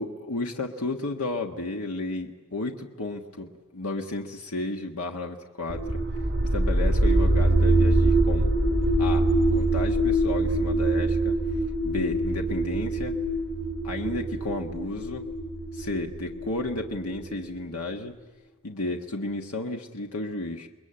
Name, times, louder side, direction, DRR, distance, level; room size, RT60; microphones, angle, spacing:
voice 1, 0.0-6.0 6.4-8.5 9.0-11.4 11.8-13.2 13.8-15.3 15.7-18.1 18.6-20.7, left 2 dB, 85° left, 3 dB, 1.4 m, -33 dB
sound 1, 5.7-17.5, right 1 dB, 45° right, 2.9 m, -24 dB
29.5 x 21.5 x 8.8 m, 1.3 s
head